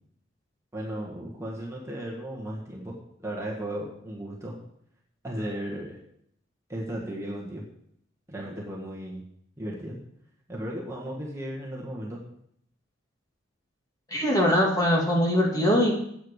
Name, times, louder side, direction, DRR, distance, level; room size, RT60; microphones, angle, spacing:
voice 1, 0.7-3.0 3.2-4.6 5.2-6.0 6.7-7.7 8.3-9.2 9.6-10.0 10.5-12.2, right 1 dB, 15° right, -3 dB, 1.6 m, -35 dB
voice 2, 14.1-15.9, equal, 20° left, -2 dB, 2.0 m, -22 dB
8.1 x 8.1 x 6.5 m, 0.71 s
head